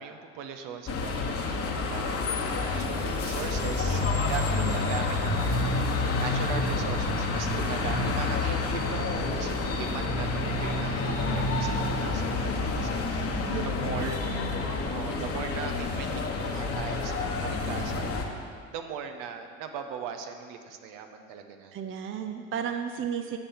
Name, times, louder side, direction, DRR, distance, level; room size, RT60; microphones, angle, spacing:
voice 1, 0.0-14.2 14.9-18.2 18.7-21.9, right 7 dB, 60° right, 6 dB, 1.0 m, -39 dB
sound 1, 0.9-18.3, left 3 dB, 40° left, 1.3 m, -28 dB
voice 2, 4.5-5.0 13.5-14.6 21.7-23.4, right 8 dB, 35° right, 6 dB, 0.6 m, -34 dB
8.8 x 6.9 x 5.8 m, 2.2 s
hypercardioid pair, 70°, 36 cm